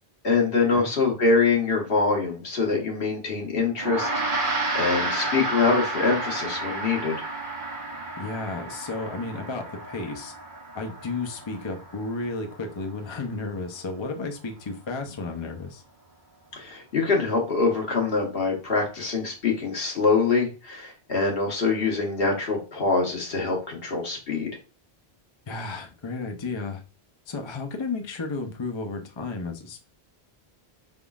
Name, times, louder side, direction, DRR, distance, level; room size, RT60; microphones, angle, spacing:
voice 1, 0.2-7.2 16.5-24.5, left 4 dB, 70° left, -1 dB, 1.4 m, -24 dB
Gong, 3.8-13.3, right 2 dB, 60° right, 1.0 m, -31 dB
voice 2, 8.2-10.3 10.7-15.8 25.5-26.8 27.3-29.9, left 3 dB, 35° left, 4 dB, 0.6 m, -33 dB
5.0 x 3.6 x 2.3 m, 0.33 s
omnidirectional pair, 1.0 m